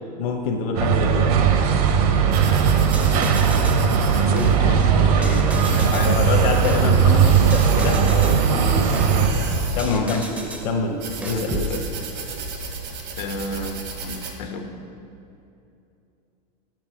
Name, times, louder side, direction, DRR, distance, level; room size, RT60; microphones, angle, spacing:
voice 1, 0.2-1.4 6.0-8.8 9.7-10.2 10.6-11.7, left 4 dB, 55° left, 2 dB, 0.8 m, -26 dB
sound 1, 0.8-9.3, right 7 dB, 60° right, 0.7 m, -18 dB
sound 2, 2.3-14.3, right 4 dB, 85° right, 1.4 m, -32 dB
sound 3, 2.6-3.8 4.4-6.1 6.6-8.4 8.9-10.7 11.2-11.7, right 1 dB, 5° right, 0.4 m, -30 dB
voice 2, 4.1-6.2 6.9-7.0 9.9-10.6 11.3-12.0 13.2-14.7, left 3 dB, 85° left, 4 dB, 1.0 m, -31 dB
6.6 x 6.1 x 6.1 m, 2.7 s
supercardioid pair, 165°, 21 cm